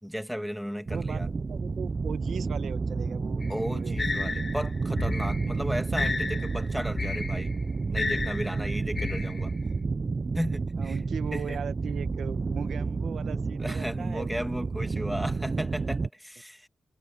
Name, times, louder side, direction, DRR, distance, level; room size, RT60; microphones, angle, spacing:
voice 1, 0.0-1.3 3.5-7.6 7.9-9.5 10.3-11.0 11.3-11.6 13.6-16.7, equal, ahead, 1.8 m, -35 dB
sound 1, 0.9-16.1, right 4 dB, 40° right, 0.6 m, -30 dB
voice 2, 0.9-1.2 1.5-3.4 3.7-3.9 10.8-14.3, right 7 dB, 80° right, 1.4 m, -38 dB
sound 2, 3.4-9.7, left 4 dB, 40° left, 0.6 m, -33 dB
cardioid pair, 80°, 0 cm